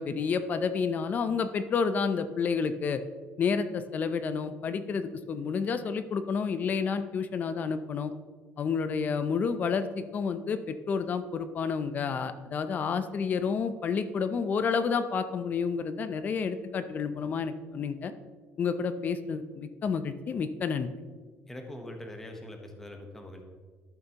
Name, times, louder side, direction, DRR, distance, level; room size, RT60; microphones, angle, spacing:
voice 1, 0.0-3.0 3.4-8.1 8.6-18.1 18.6-20.9, left 5 dB, 35° left, 11 dB, 0.5 m, -30 dB
voice 2, 21.5-23.4, left 1 dB, 5° left, 3 dB, 0.9 m, -42 dB
12.0 x 6.9 x 2.9 m, 1.5 s
cardioid pair, 160°, 5 cm